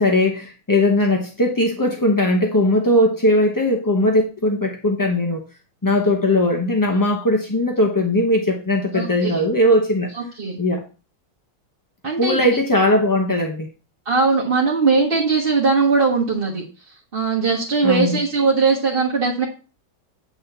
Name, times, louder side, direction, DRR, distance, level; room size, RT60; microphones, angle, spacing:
voice 1, 0.0-5.4 5.8-10.1 10.6-10.8 12.2-13.7 17.8-18.2, left 1 dB, 25° left, 1 dB, 0.4 m, -19 dB
voice 2, 8.9-9.4 10.1-10.6 12.0-12.4 14.0-16.6 17.1-19.5, right 4 dB, 35° right, -4 dB, 1.7 m, -19 dB
8.6 x 3.7 x 6.7 m, 0.35 s
omnidirectional pair, 1.9 m